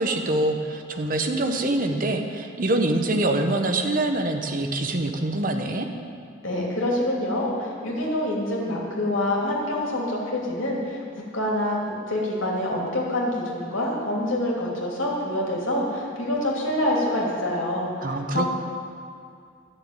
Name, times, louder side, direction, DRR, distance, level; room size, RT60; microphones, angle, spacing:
voice 1, 0.0-5.9 18.0-18.5, right 2 dB, 45° right, 4 dB, 0.9 m, -25 dB
voice 2, 6.4-11.0 11.3-18.5, left 1 dB, 80° left, -3 dB, 2.7 m, -26 dB
12.0 x 6.6 x 8.7 m, 2.3 s
head